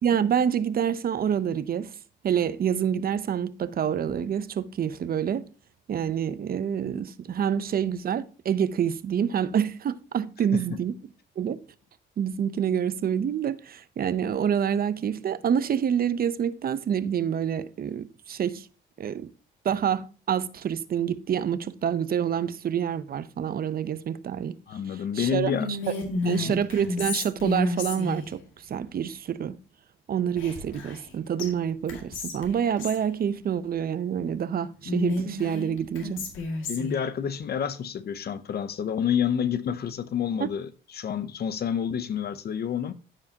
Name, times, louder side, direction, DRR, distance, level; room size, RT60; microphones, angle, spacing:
voice 1, 0.0-1.9 2.2-5.5 5.9-10.9 11.4-11.6 12.2-18.7 19.0-19.3 19.6-24.6 24.9-25.5 25.9-26.0 26.2-29.6 30.1-36.2 40.4-40.5, right 8 dB, 50° right, 0.7 m, -27 dB
voice 2, 24.7-25.7 26.2-26.6 36.7-42.9, left 8 dB, 55° left, 0.7 m, -29 dB
Whispering, 25.5-28.3 30.4-31.1 31.4-31.5 31.9-33.0 34.8-37.0, left 3 dB, 80° left, 2.1 m, -31 dB
14.0 x 4.9 x 2.8 m
cardioid pair, 90°, 20 cm